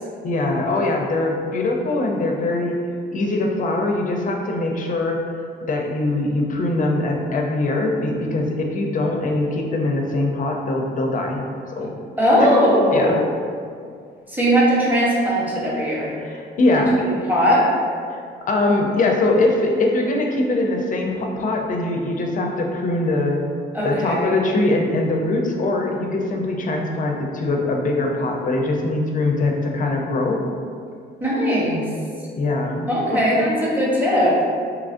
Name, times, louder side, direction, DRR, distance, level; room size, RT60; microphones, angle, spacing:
voice 1, 0.2-2.8 3.1-5.2 5.7-11.4 11.7-11.9 12.4-12.5 12.9-13.1 16.2-17.1 18.1-18.2 18.5-23.4 23.8-30.4 32.4-33.2, left 2 dB, 40° left, 1 dB, 0.4 m, -22 dB
voice 2, 12.2-13.2 14.3-16.1 17.0-17.7 23.7-24.4 31.2-31.9 32.9-34.4, equal, 10° right, -6 dB, 0.8 m, -19 dB
2.9 x 2.4 x 2.5 m, 2.2 s
cardioid pair, 90°, 20 cm